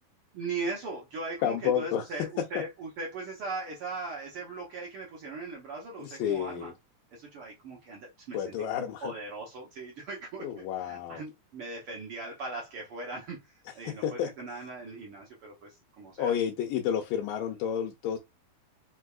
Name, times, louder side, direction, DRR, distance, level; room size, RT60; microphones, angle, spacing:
voice 1, 0.3-6.7 7.1-13.4 13.7-15.7 16.0-16.3, right 3 dB, 85° right, 1.2 m, -39 dB
voice 2, 1.4-2.1 6.0-6.7 8.3-9.1 10.4-11.2 13.8-14.6 16.2-18.2, left 9 dB, 80° left, 2.2 m, -31 dB
5.3 x 3.4 x 2.4 m
omnidirectional pair, 4.0 m